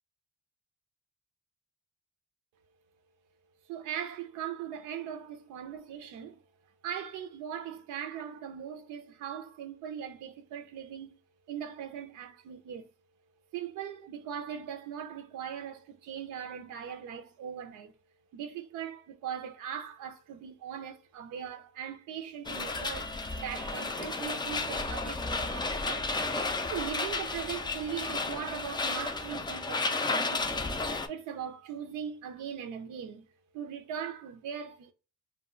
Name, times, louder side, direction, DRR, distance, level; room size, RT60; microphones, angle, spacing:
voice 1, 3.7-6.4 6.8-11.2 11.5-12.9 13.5-17.9 18.3-26.2 26.7-30.7 31.1-33.3 33.5-34.9, right 8 dB, 85° right, 0.5 m, -40 dB
sound 1, 22.5-31.1, left 3 dB, 15° left, 0.3 m, -33 dB
2.2 x 2.2 x 3.7 m
cardioid pair, 90°, 30 cm